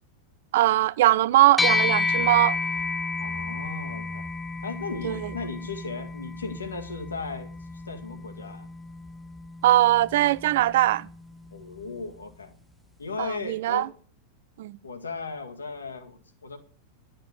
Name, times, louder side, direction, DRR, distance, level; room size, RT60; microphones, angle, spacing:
voice 1, 0.5-2.6 5.0-5.3 9.6-11.1 13.2-13.9 14.6-14.8, right 15 dB, 55° right, 0.5 m, -21 dB
sound 1, 1.6-11.2, left 3 dB, 5° left, 0.8 m, -31 dB
voice 2, 3.2-4.3 4.6-7.5 7.9-8.7 11.5-12.6 13.0-13.9 14.8-16.6, left 4 dB, 75° left, 2.0 m, -36 dB
12.0 x 8.8 x 6.5 m
figure-of-eight pair, 90°, 0 cm